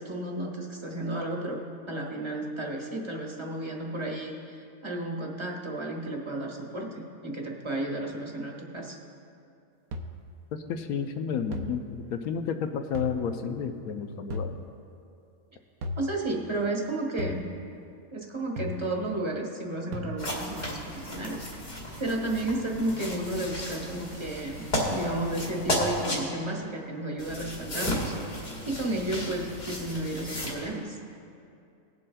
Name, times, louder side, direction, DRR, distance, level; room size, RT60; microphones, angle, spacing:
voice 1, 0.0-9.0 16.0-17.6 18.1-21.4 22.0-31.0, right 1 dB, 20° right, -1 dB, 1.0 m, -33 dB
sound 1, 9.9-10.3 11.5-11.9 12.9-13.4 14.3-14.7 15.8-16.2 17.2-17.6 18.6-19.0 19.9-20.1, left 1 dB, 85° right, 1.2 m, -35 dB
voice 2, 10.5-14.6, left 6 dB, 90° left, 7 dB, 1.1 m, -31 dB
sound 2, 20.2-26.2 27.2-30.5, equal, 55° left, 2.2 m, -34 dB
20.0 x 7.7 x 2.3 m, 2.6 s
omnidirectional pair, 1.5 m